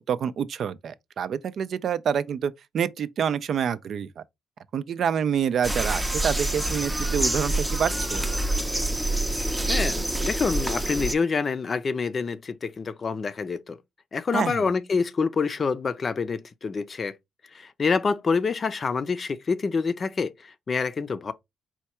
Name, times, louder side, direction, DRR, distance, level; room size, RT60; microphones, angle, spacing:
voice 1, 0.0-4.2 4.7-8.2 14.3-14.6, right 8 dB, 60° right, 0.4 m, -27 dB
sound 1, 5.6-11.1, right 1 dB, 10° right, 0.5 m, -26 dB
voice 2, 9.7-13.8 14.1-17.1 17.5-21.3, left 5 dB, 40° left, 0.5 m, -27 dB
4.4 x 2.3 x 4.2 m
cardioid pair, 90°, 0 cm